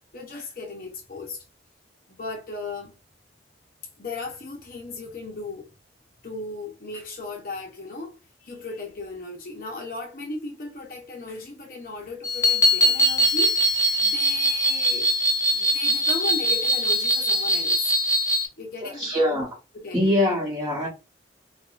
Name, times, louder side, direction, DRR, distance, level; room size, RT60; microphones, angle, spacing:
voice 1, 0.1-1.4 2.1-2.9 4.0-5.7 6.2-15.1 15.5-17.9 18.6-19.4 19.7-20.2, left 3 dB, 50° left, 0.8 m, -36 dB
sound 1, 12.2-18.5, equal, 15° left, 0.4 m, -22 dB
voice 2, 18.8-19.5 19.9-20.9, left 1 dB, 20° right, 1.0 m, -23 dB
4.6 x 2.2 x 2.4 m
head